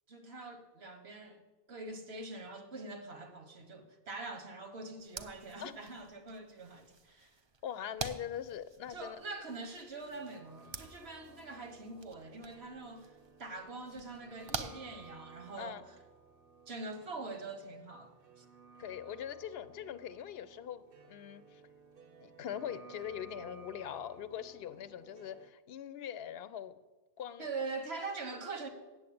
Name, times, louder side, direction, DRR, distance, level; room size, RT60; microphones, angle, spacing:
voice 1, 0.1-1.4 1.7-7.4 8.9-13.1 13.4-15.8 16.7-18.4 27.4-28.7, right 3 dB, 80° right, 1.5 m, -44 dB
sound 1, 5.0-15.6, right 4 dB, 35° right, 0.5 m, -48 dB
voice 2, 7.6-9.2 15.6-15.8 18.8-20.8 21.1-21.6 22.2-26.8 27.2-27.5, left 9 dB, 75° left, 0.8 m, -42 dB
sound 2, 9.3-25.5, right 5 dB, 65° right, 1.0 m, -57 dB
7.8 x 7.7 x 8.5 m
omnidirectional pair, 1.0 m